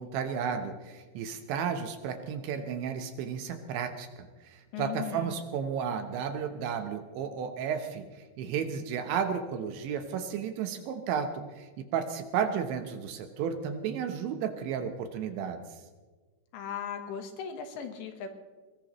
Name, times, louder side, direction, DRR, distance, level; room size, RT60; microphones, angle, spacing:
voice 1, 0.0-4.1 4.4-15.6, right 7 dB, 75° right, 7 dB, 3.0 m, -33 dB
voice 2, 4.7-5.3 16.5-18.3, left 7 dB, 70° left, 5 dB, 3.2 m, -37 dB
22.5 x 20.0 x 3.1 m, 1.4 s
omnidirectional pair, 5.8 m